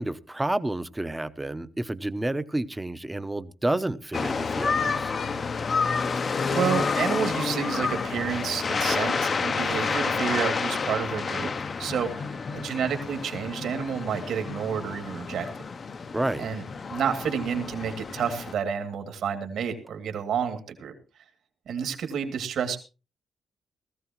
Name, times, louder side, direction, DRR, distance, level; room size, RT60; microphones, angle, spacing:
voice 1, 0.0-5.1 16.1-16.5, right 1 dB, 10° right, 0.7 m, -30 dB
sound 1, 4.1-18.5, left 5 dB, 35° left, 0.6 m, -29 dB
voice 2, 6.2-11.5 11.8-15.5 16.4-16.6 16.9-20.9 21.7-22.8, right 7 dB, 75° right, 2.4 m, -30 dB
18.5 x 15.0 x 3.0 m
wide cardioid pair, 155°, 0 cm